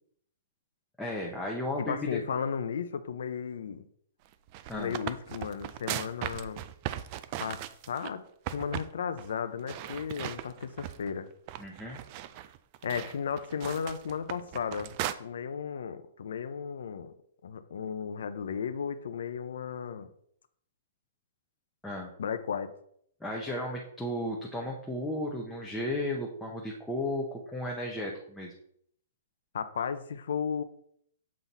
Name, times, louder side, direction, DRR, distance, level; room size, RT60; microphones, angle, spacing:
voice 1, 1.0-2.2 4.7-5.0 11.6-12.0 21.8-22.1 23.2-28.5, left 1 dB, 5° left, -3 dB, 0.7 m, -34 dB
voice 2, 1.8-3.8 4.7-6.6 7.4-7.6 7.9-8.2 8.5-11.3 12.8-17.1 17.4-20.1 22.2-22.7 29.5-30.6, left 7 dB, 75° left, 11 dB, 0.6 m, -34 dB
sound 1, 4.3-8.1 8.5-8.9 9.2-9.3 9.7-11.1 11.5-15.1, right 13 dB, 30° right, 0.3 m, -38 dB
7.5 x 4.0 x 4.1 m, 0.66 s
hypercardioid pair, 170°, 0 cm